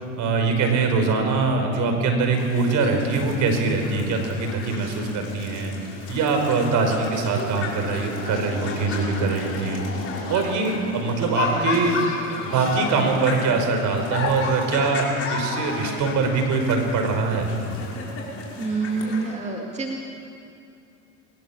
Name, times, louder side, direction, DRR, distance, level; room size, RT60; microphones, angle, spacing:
voice 1, 0.0-5.7 6.1-9.8 10.3-11.9 12.4-17.5, right 4 dB, 50° right, 4 dB, 5.3 m, -23 dB
sound 1, 2.3-19.3, left 3 dB, 35° left, 6.0 m, -32 dB
voice 2, 18.6-20.0, right 4 dB, 15° right, 1 dB, 2.2 m, -27 dB
21.0 x 20.5 x 7.4 m, 2.6 s
hypercardioid pair, 85°, 38 cm